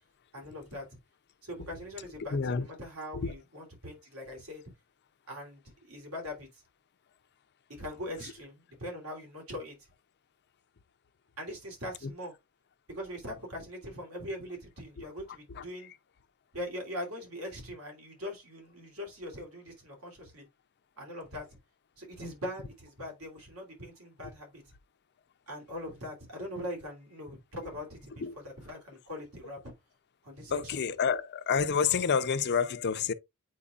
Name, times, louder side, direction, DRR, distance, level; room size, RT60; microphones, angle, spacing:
voice 1, 0.3-0.9 1.4-4.6 5.3-6.5 7.8-9.8 11.4-12.3 12.9-15.9 16.5-20.5 21.0-21.5 22.0-24.6 25.5-29.7 30.2-30.7, left 1 dB, 75° right, 3.0 m, -41 dB
voice 2, 2.3-2.7 3.1-3.3 15.0-15.1 15.5-15.6 28.2-28.3 30.5-33.1, left 6 dB, 50° left, 0.5 m, -28 dB
8.5 x 4.6 x 2.4 m
head